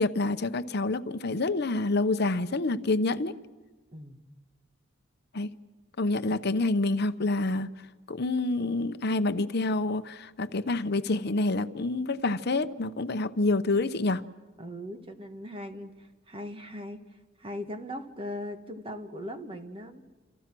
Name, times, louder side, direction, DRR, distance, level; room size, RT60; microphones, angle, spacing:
voice 1, 0.0-3.3 5.3-5.5 6.0-7.7 8.1-14.2, left 2 dB, 55° left, 0.8 m, -27 dB
voice 2, 3.9-4.2 14.6-17.0 17.4-20.0, left 1 dB, 30° right, 1.7 m, -39 dB
28.0 x 28.0 x 6.2 m
head